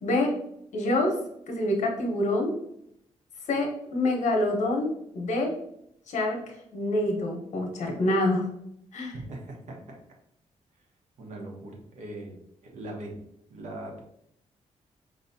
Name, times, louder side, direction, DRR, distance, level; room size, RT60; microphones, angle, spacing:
voice 1, 0.0-0.3 0.7-1.1 1.5-2.5 3.5-5.5 6.1-8.5 8.9-9.1, left 1 dB, 80° left, 1 dB, 1.1 m, -26 dB
voice 2, 9.1-10.0 11.2-12.4 12.6-13.1 13.5-14.0, right 1 dB, 80° right, 0 dB, 1.2 m, -40 dB
5.1 x 3.0 x 2.7 m, 0.75 s
cardioid pair, 130°, 12 cm